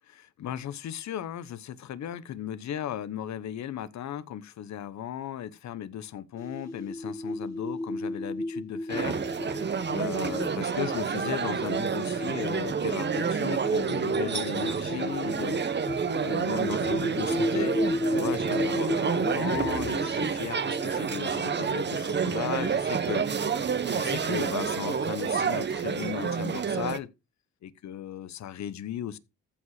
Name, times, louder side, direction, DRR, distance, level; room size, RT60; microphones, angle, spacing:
voice 1, 0.1-9.6 9.9-15.6 16.2-17.7 18.1-23.2 23.9-27.1 27.6-29.2, left 10 dB, 65° left, 1.1 m, -36 dB
sound 1, 6.4-22.7, left 1 dB, 10° left, 2.6 m, -34 dB
sound 2, 8.9-27.0, right 6 dB, 35° right, 1.2 m, -29 dB
14.5 x 4.8 x 4.9 m
cardioid pair, 90°, 30 cm